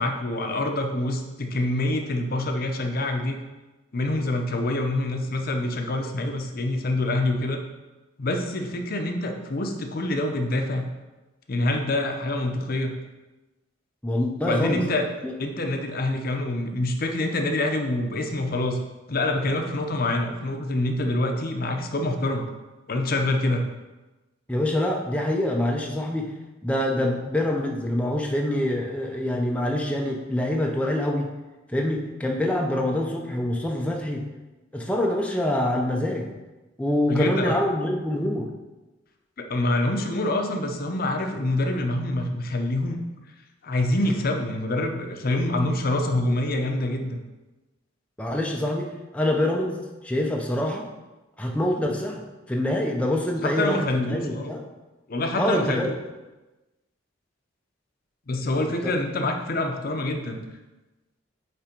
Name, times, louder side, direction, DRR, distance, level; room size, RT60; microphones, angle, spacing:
voice 1, 0.0-3.4 3.9-7.6 8.2-10.9 11.5-12.9 14.4-15.0 15.4-18.8 19.1-22.4 22.9-23.6 37.1-37.6 39.4-43.0 43.6-47.2 53.4-54.5 55.1-55.8 58.3-60.4, left 2 dB, 50° left, 4 dB, 0.7 m, -26 dB
voice 2, 14.0-14.8 15.2-15.3 24.5-26.3 26.6-31.3 31.7-34.2 34.7-36.3 36.8-38.5 48.2-49.8 50.0-50.9 51.4-54.6 55.3-55.9 58.8-58.9, left 1 dB, 5° left, 0 dB, 0.5 m, -25 dB
8.7 x 3.4 x 4.4 m, 1.1 s
head